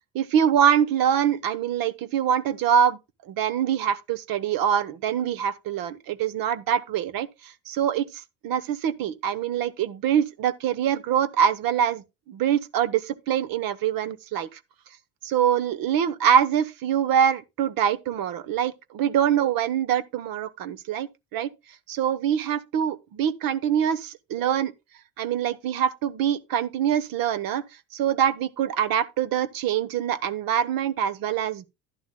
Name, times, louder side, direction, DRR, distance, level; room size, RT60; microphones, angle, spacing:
voice 1, 0.1-3.0 3.2-14.6 15.2-21.5 21.9-24.7 25.2-27.6 27.9-31.7, right 9 dB, 55° right, 1.0 m, -24 dB
11.5 x 11.0 x 2.2 m
hypercardioid pair, 70°, 41 cm